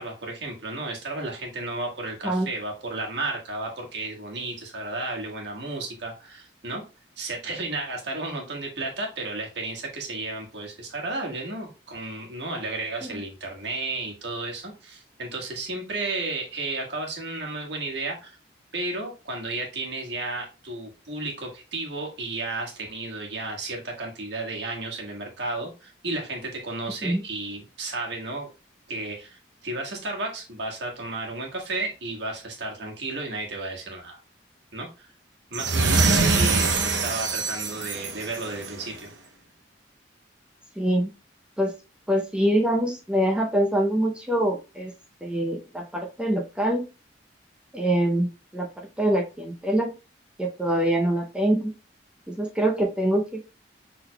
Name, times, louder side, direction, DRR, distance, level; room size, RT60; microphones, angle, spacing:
voice 1, 0.0-6.8 7.2-18.4 18.7-28.5 28.9-34.2 34.7-35.1 35.5-39.1, right 2 dB, 70° right, 0 dB, 1.5 m, -33 dB
sound 1, 35.5-38.8, right 3 dB, 90° right, 0.7 m, -24 dB
voice 2, 40.8-41.1 41.6-41.7 42.1-44.9 45.2-46.8 47.7-48.7 49.0-49.9 50.4-51.7 52.3-53.4, right 1 dB, 5° right, 0 dB, 0.6 m, -24 dB
6.3 x 3.8 x 2.2 m, 0.30 s
head